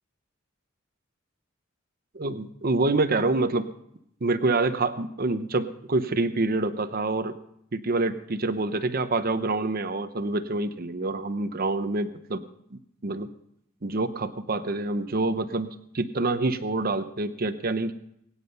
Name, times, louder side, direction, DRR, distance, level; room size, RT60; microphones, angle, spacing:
voice 1, 2.1-3.7 4.2-7.3 7.7-12.4 12.7-13.3 13.8-17.9, right 2 dB, 45° right, 10 dB, 0.8 m, -27 dB
22.5 x 9.9 x 5.5 m, 0.75 s
head